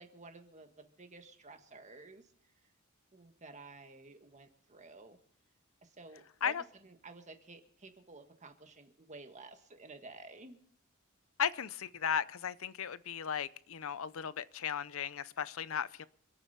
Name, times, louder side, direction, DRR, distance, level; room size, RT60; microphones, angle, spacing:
voice 1, 0.0-2.2 3.1-5.2 5.8-10.6, right 3 dB, 35° right, 6 dB, 1.6 m, -52 dB
voice 2, 11.4-16.1, left 8 dB, 75° left, 18 dB, 0.6 m, -36 dB
26.5 x 8.9 x 4.2 m, 0.62 s
head